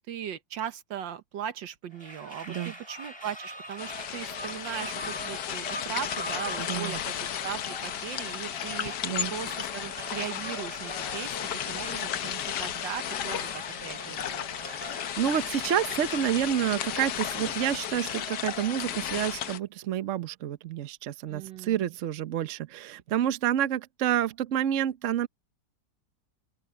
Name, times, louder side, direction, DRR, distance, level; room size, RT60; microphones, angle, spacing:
voice 1, 0.0-14.5 21.3-21.9, right 9 dB, 75° right, 1.7 m, -39 dB
sound 1, 1.9-18.9, right 1 dB, 15° right, 3.6 m, -43 dB
sound 2, 3.8-19.6, left 10 dB, 65° left, 1.4 m, -34 dB
voice 2, 6.6-7.0 9.0-9.3 14.7-25.3, right 10 dB, 55° right, 0.9 m, -29 dB
open air
omnidirectional pair, 2.0 m